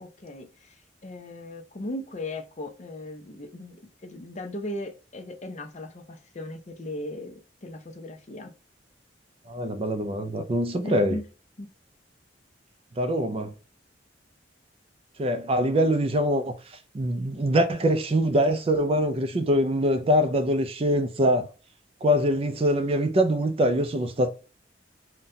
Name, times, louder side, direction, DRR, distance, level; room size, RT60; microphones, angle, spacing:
voice 1, 0.0-8.5 10.8-11.2 11.6-11.7, left 1 dB, 40° left, 0.6 m, -37 dB
voice 2, 9.5-11.2 13.0-13.5 15.2-16.5 16.9-21.5 22.0-24.3, equal, 30° right, 0.4 m, -23 dB
3.9 x 2.2 x 2.7 m
head